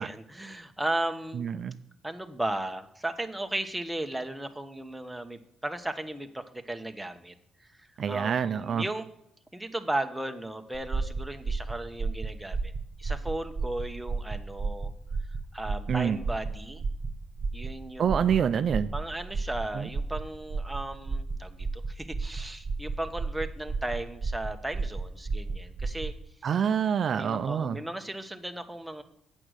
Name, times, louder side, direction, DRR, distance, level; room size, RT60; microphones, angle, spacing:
voice 1, 0.0-1.5 2.0-7.3 8.1-9.1 9.5-12.7 13.0-14.9 15.5-16.8 17.5-18.3 18.9-26.1 27.1-29.0, right 1 dB, 5° right, 6 dB, 0.9 m, -35 dB
voice 2, 1.3-1.8 8.0-8.8 15.9-16.2 18.0-18.9 19.7-19.9 26.4-27.8, right 7 dB, 55° right, 10 dB, 0.4 m, -27 dB
sound 1, 10.7-26.2, right 4 dB, 35° right, 1.1 m, -33 dB
8.7 x 6.2 x 6.3 m, 0.78 s
cardioid pair, 90°, 0 cm